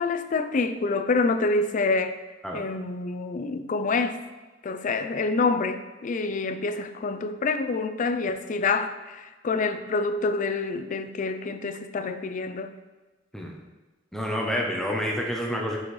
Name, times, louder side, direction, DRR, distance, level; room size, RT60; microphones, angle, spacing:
voice 1, 0.0-2.2 2.5-4.3 4.6-12.8, left 3 dB, 40° left, 9 dB, 0.4 m, -27 dB
voice 2, 14.1-15.8, equal, 5° left, -1 dB, 0.6 m, -28 dB
6.2 x 5.3 x 3.2 m, 1.2 s
head